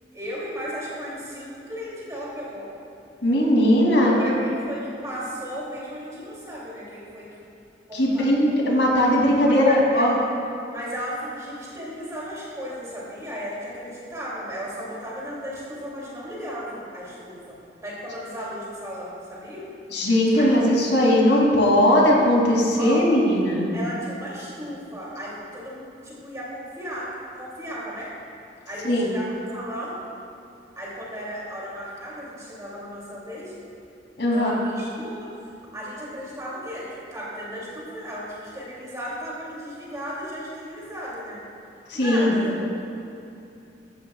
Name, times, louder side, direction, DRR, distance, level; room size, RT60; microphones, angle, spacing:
voice 1, 0.1-2.7 4.0-7.3 7.9-8.7 9.5-10.2 10.7-17.6 17.8-19.7 20.3-20.7 22.8-23.1 23.7-28.1 28.7-30.0 30.7-33.5 34.3-35.3 35.7-41.4 41.9-42.6, equal, 20° right, -7 dB, 2.8 m, -35 dB
voice 2, 3.2-4.3 7.9-10.1 19.9-23.7 28.8-29.1 34.2-34.5 41.9-42.3, left 1 dB, 85° left, -3 dB, 2.8 m, -19 dB
15.0 x 14.5 x 2.4 m, 2.7 s
head